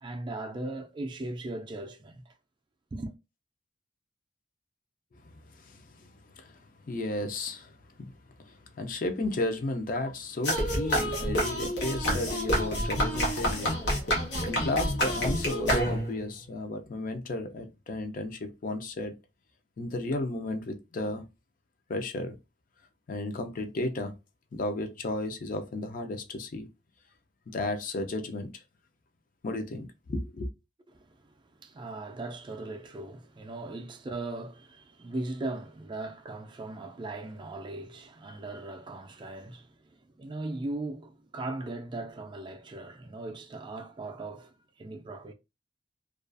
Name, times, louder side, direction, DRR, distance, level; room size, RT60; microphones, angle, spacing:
voice 1, 0.0-2.3 2.9-3.1 30.9-45.3, right 2 dB, 25° right, 0.3 m, -39 dB
voice 2, 5.2-6.6 6.8-8.1 8.4-19.1 19.8-21.3 21.9-22.4 23.1-24.1 24.5-26.7 27.5-28.6 29.4-30.5, left 2 dB, 50° left, 0.4 m, -34 dB
sound 1, 10.4-16.3, equal, 90° left, 0.9 m, -28 dB
2.3 x 2.3 x 2.4 m
head